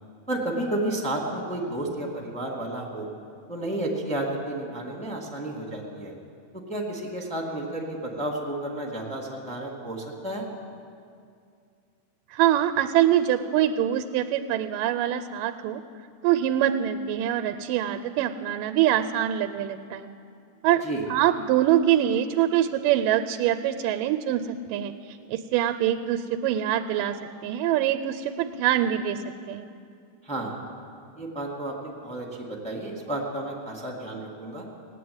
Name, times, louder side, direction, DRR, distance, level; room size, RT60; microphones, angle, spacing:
voice 1, 0.3-3.1 3.5-6.1 6.7-10.5 20.8-21.0 30.2-30.5 31.1-34.7, right 1 dB, 5° left, -2 dB, 1.1 m, -31 dB
voice 2, 12.3-15.8 16.2-20.1 20.6-20.8 21.1-27.2 27.4-29.2 29.5-29.7, right 11 dB, 85° right, 8 dB, 2.2 m, -24 dB
17.5 x 8.4 x 9.4 m, 2.4 s
omnidirectional pair, 3.8 m